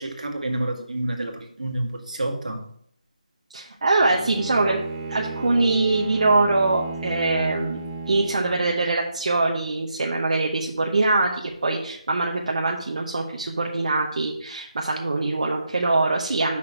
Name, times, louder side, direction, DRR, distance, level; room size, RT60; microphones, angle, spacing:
voice 1, 0.0-2.6, right 1 dB, 80° right, 2 dB, 1.8 m, -29 dB
voice 2, 3.5-4.8 5.1-16.6, right 3 dB, 65° right, -1 dB, 1.0 m, -23 dB
Bowed string instrument, 4.0-8.8, right 3 dB, 20° right, 0.9 m, -34 dB
6.1 x 6.0 x 4.6 m, 0.64 s
figure-of-eight pair, 165°, 4 cm